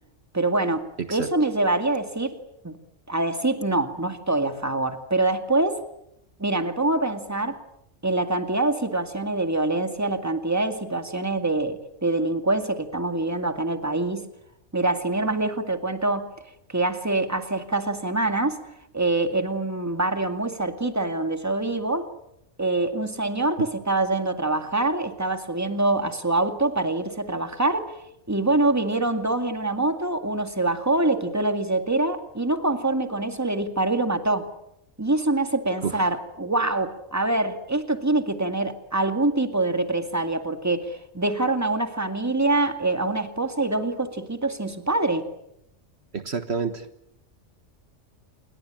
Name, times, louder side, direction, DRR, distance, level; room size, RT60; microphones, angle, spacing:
voice 1, 0.3-2.4 2.6-2.8 3.1-5.8 6.4-7.6 8.0-14.3 14.7-16.3 16.7-18.6 18.9-22.1 22.6-28.0 28.3-34.5 35.0-45.3, right 2 dB, 15° right, 8 dB, 2.1 m, -25 dB
voice 2, 46.1-46.8, right 5 dB, 60° right, 10 dB, 1.6 m, -28 dB
28.5 x 22.5 x 9.0 m, 0.82 s
omnidirectional pair, 1.3 m